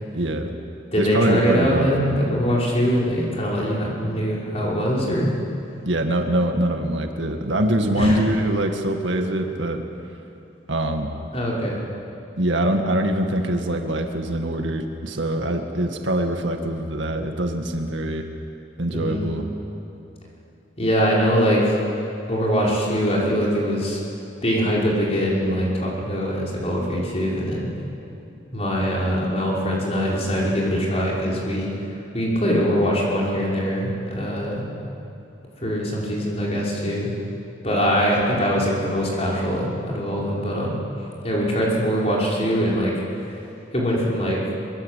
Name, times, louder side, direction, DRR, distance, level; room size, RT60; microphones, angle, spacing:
voice 1, 0.1-0.5 1.0-2.2 5.8-9.8 10.7-11.1 12.4-18.3 18.8-19.4, right 1 dB, 85° right, 4 dB, 2.0 m, -23 dB
voice 2, 0.9-5.3 7.9-8.2 11.3-11.8 18.9-19.4 20.8-21.8 22.3-24.0 24.4-27.7 28.5-31.9 32.1-34.7 35.6-37.1 37.6-40.8 41.2-42.9 43.2-43.4 43.7-44.4, equal, 35° left, -4 dB, 5.6 m, -22 dB
23.5 x 23.0 x 8.5 m, 2.8 s
head